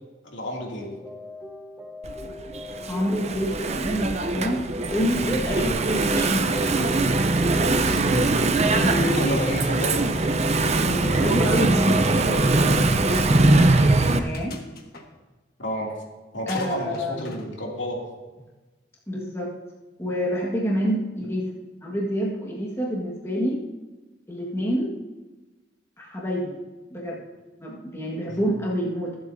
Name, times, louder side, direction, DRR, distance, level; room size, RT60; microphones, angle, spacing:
voice 1, 0.2-0.9 5.5-5.7 7.8-8.3 8.6-10.1 15.6-16.0 16.3-18.1 28.3-28.4, equal, 80° left, -2 dB, 2.7 m, -30 dB
sound 1, 0.9-13.9, left 2 dB, 5° right, 1.1 m, -42 dB
Engine / Mechanisms, 2.0-14.2, right 2 dB, 35° right, 0.6 m, -22 dB
voice 2, 2.8-4.6 4.9-6.9 8.7-9.2 10.8-14.6 16.5-17.3 19.1-19.5 20.0-21.5 21.8-23.6 24.3-24.9 26.0-26.6 26.9-27.2 27.6-29.2, equal, 15° left, -4 dB, 1.6 m, -27 dB
sound 2, 12.4-12.5 12.8-12.9 14.0-15.1 16.5-17.5, left 2 dB, 55° left, 1.4 m, -41 dB
23.5 x 7.8 x 2.7 m, 1.2 s
head